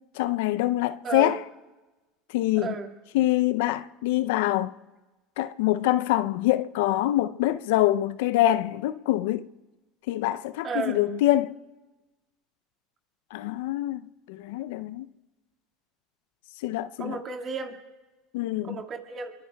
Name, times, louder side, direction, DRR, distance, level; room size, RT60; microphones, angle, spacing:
voice 1, 0.1-1.4 2.3-2.8 3.1-4.7 5.4-9.5 10.1-11.5 13.3-14.0 14.3-15.1 16.6-17.2 18.3-18.8, left 15 dB, 75° left, 0.5 m, -25 dB
voice 2, 2.5-2.9 10.6-11.0 17.0-17.8 18.6-19.3, right 5 dB, 40° right, 1.9 m, -33 dB
27.5 x 23.0 x 2.3 m
hypercardioid pair, 85°, 0 cm